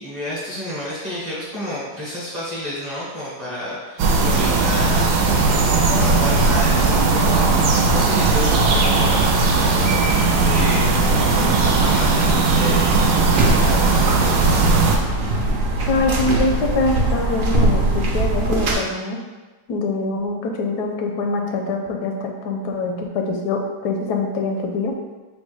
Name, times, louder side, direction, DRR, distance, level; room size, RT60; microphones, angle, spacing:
voice 1, 0.0-14.7, equal, 35° right, -8 dB, 0.8 m, -31 dB
sound 1, 4.0-15.0, right 3 dB, 85° right, 1.1 m, -17 dB
sound 2, 5.9-11.7, left 6 dB, 70° left, 0.8 m, -32 dB
sound 3, 13.4-18.8, right 1 dB, 60° right, 1.0 m, -21 dB
voice 2, 15.9-19.2 19.7-24.9, left 3 dB, 85° left, 2 dB, 1.2 m, -24 dB
3.8 x 2.2 x 4.5 m, 1.2 s
omnidirectional pair, 1.7 m